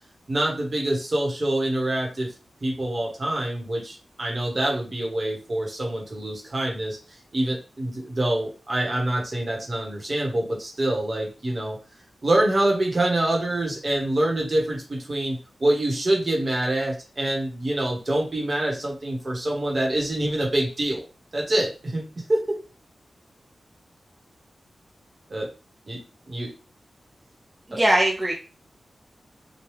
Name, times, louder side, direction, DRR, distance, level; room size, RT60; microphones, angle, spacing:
voice 1, 0.3-2.3 2.6-11.8 12.2-21.0 21.3-22.0 22.3-22.6 25.3-25.5 25.9-26.5 27.7-27.8, right 1 dB, 40° right, -1 dB, 1.1 m, -26 dB
voice 2, 27.7-28.3, right 1 dB, 20° right, -2 dB, 0.5 m, -20 dB
3.2 x 2.3 x 3.1 m, 0.34 s
wide cardioid pair, 115°, 0 cm